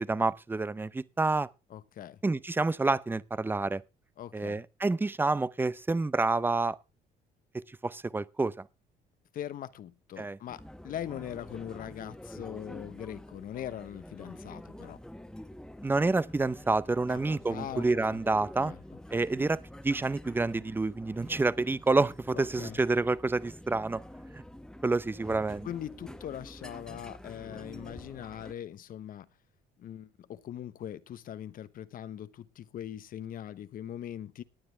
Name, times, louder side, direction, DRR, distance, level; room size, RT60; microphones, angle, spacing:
voice 1, 0.0-1.5 2.2-3.8 4.3-6.8 7.5-8.5 10.2-10.4 15.8-18.7 19.1-19.6 19.8-24.0 24.3-24.4 24.8-25.7, right 3 dB, 10° right, 0.6 m, -28 dB
voice 2, 1.7-2.2 4.2-4.6 9.3-15.0 17.1-17.2 17.5-18.2 18.6-18.8 19.1-19.2 22.3-22.8 25.6-29.3 29.8-34.4, left 10 dB, 55° left, 1.0 m, -41 dB
sound 1, 10.5-28.5, left 1 dB, 5° left, 1.1 m, -47 dB
18.0 x 9.7 x 3.4 m
cardioid pair, 110°, 17 cm